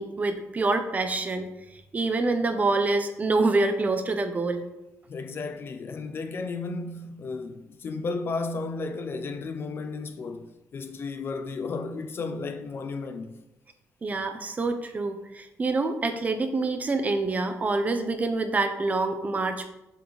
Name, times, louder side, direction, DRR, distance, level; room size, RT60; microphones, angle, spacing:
voice 1, 0.0-1.5 1.9-4.6 14.0-19.7, right 3 dB, 30° right, 0.8 m, -26 dB
voice 2, 5.1-13.4, left 3 dB, 45° left, 0.6 m, -33 dB
7.5 x 5.6 x 4.0 m
cardioid pair, 125°, 5 cm